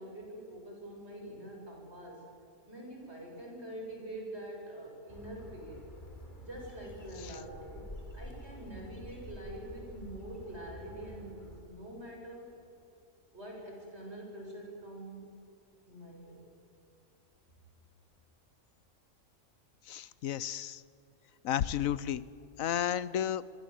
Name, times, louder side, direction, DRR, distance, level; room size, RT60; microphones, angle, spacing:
voice 1, 0.0-2.2 2.7-5.8 6.4-7.8 8.1-12.5 13.3-15.3 15.8-16.4, right 1 dB, 50° right, -1 dB, 7.6 m, -45 dB
Bird, 5.1-11.6, equal, 35° left, 3.6 m, -48 dB
voice 2, 19.9-20.8 21.4-22.2 22.6-23.4, left 10 dB, 85° left, 18 dB, 1.2 m, -32 dB
27.5 x 21.5 x 7.8 m, 2.7 s
omnidirectional pair, 1.4 m